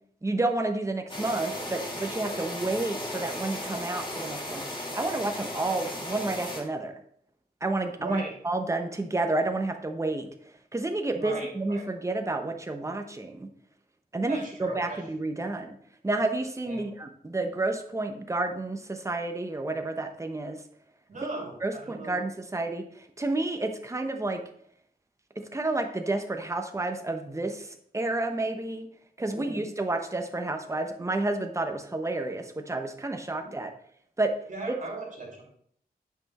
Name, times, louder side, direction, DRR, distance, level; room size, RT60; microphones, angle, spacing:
voice 1, 0.2-4.6 4.9-6.9 7.6-10.3 10.7-13.5 14.1-15.8 16.0-20.6 21.6-24.4 25.5-28.9 29.2-33.7 34.2-34.3, right 2 dB, 20° right, 6 dB, 0.9 m, -30 dB
sound 1, 1.1-6.6, left 1 dB, 30° left, 1.9 m, -35 dB
voice 2, 8.0-8.3 11.2-11.8 14.3-15.0 16.7-16.9 21.1-22.2 29.3-29.6 33.4-33.5 34.5-35.4, right 2 dB, 50° right, -1 dB, 3.0 m, -38 dB
8.9 x 5.8 x 4.2 m, 0.65 s
wide cardioid pair, 130°, 17 cm